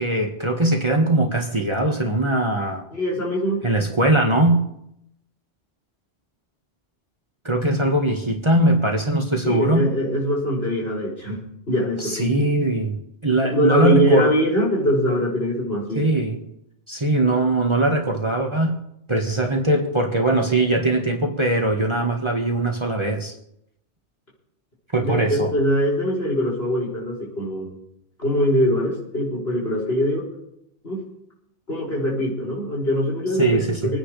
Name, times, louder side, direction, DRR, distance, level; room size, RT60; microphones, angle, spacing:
voice 1, 0.0-2.8 3.6-4.6 7.4-9.9 12.0-13.0 13.2-14.3 15.9-16.4 16.9-18.8 19.1-23.3 24.9-25.5 33.4-33.9, right 2 dB, 25° right, 1 dB, 1.7 m, -21 dB
voice 2, 2.9-3.6 9.4-12.3 13.5-16.1 25.0-27.7 28.2-30.2 30.8-31.0 31.7-34.0, left 1 dB, 65° left, -6 dB, 6.5 m, -22 dB
26.5 x 10.0 x 3.3 m, 0.78 s
omnidirectional pair, 1.2 m